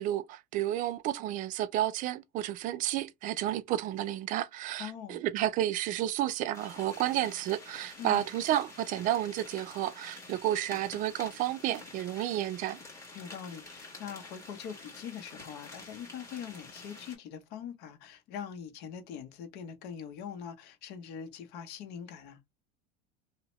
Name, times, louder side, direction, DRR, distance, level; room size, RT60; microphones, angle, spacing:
voice 1, 0.0-12.8, right 13 dB, 45° right, 0.4 m, -31 dB
voice 2, 4.8-5.2 8.0-8.2 13.1-22.4, left 8 dB, 55° left, 0.8 m, -43 dB
sound 1, 6.5-17.2, left 2 dB, 15° left, 1.4 m, -49 dB
2.7 x 2.1 x 2.9 m
supercardioid pair, 130°, 20 cm